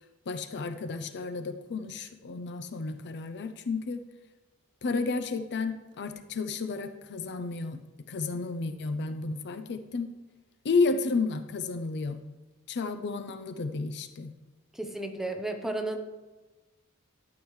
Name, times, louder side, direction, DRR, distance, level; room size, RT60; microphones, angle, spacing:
voice 1, 0.3-4.0 4.8-7.8 8.1-10.1 10.6-12.2 12.7-14.3, left 4 dB, 50° left, 9 dB, 0.5 m, -32 dB
voice 2, 14.7-16.0, right 2 dB, ahead, 3 dB, 0.8 m, -33 dB
12.5 x 8.2 x 3.1 m, 1.2 s
head